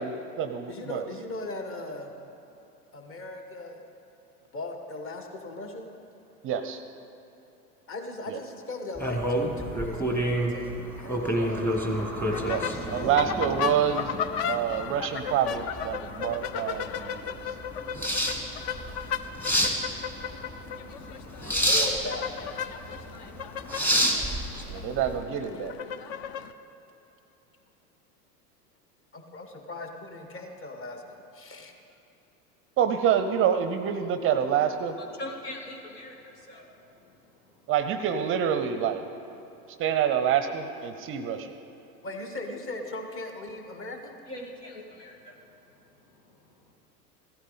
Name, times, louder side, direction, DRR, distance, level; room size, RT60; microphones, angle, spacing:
voice 1, 0.0-1.0 6.4-6.8 8.3-8.4 11.3-11.5 12.4-14.2 14.5-17.5 24.7-25.7 32.8-35.0 37.7-39.0 39.8-41.6, right 8 dB, 30° right, 9 dB, 0.6 m, -27 dB
voice 2, 0.7-2.1 2.9-3.8 4.5-5.9 7.9-11.8 12.2-13.2 15.1-15.2 21.6-22.2 29.1-31.7 42.0-44.1, left 2 dB, 25° left, 4 dB, 1.5 m, -38 dB
sound 1, 9.0-25.2, equal, 5° left, 1.4 m, -29 dB
sound 2, 12.3-26.5, left 8 dB, 45° left, 0.6 m, -35 dB
voice 3, 35.0-37.7 39.4-39.8 44.3-46.7, left 1 dB, 75° left, 0 dB, 2.2 m, -44 dB
16.0 x 13.0 x 4.1 m, 3.0 s
figure-of-eight pair, 90°, 47 cm